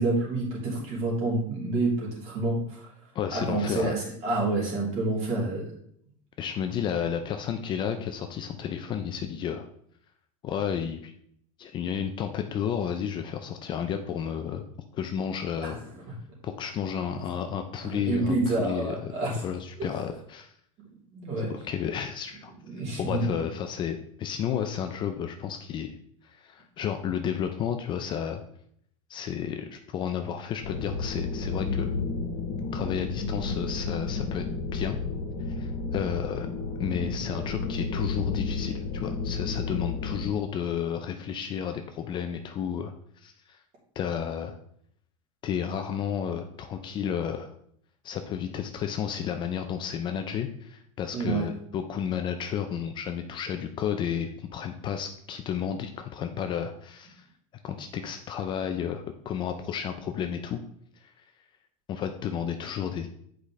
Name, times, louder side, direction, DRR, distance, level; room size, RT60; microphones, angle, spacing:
voice 1, 0.0-2.9 3.3-5.7 15.6-15.8 17.1-17.2 17.8-19.4 19.8-19.9 21.1-21.5 22.7-23.4 51.1-51.5, right 2 dB, 40° right, -3 dB, 2.9 m, -28 dB
voice 2, 3.1-4.0 6.4-9.7 10.4-11.1 11.6-14.6 14.9-15.8 16.4-20.5 21.4-22.5 23.0-26.0 26.2-28.4 29.1-31.9 32.7-34.4 34.7-35.0 35.5-36.5 36.8-42.9 43.2-43.6 44.0-44.5 45.4-47.5 48.0-57.3 57.6-60.6 61.0-61.1 61.9-63.1, left 8 dB, 30° left, 6 dB, 0.5 m, -32 dB
sound 1, 30.6-40.3, left 4 dB, 75° left, 1.4 m, -31 dB
7.9 x 5.0 x 3.2 m, 0.67 s
supercardioid pair, 145°, 17 cm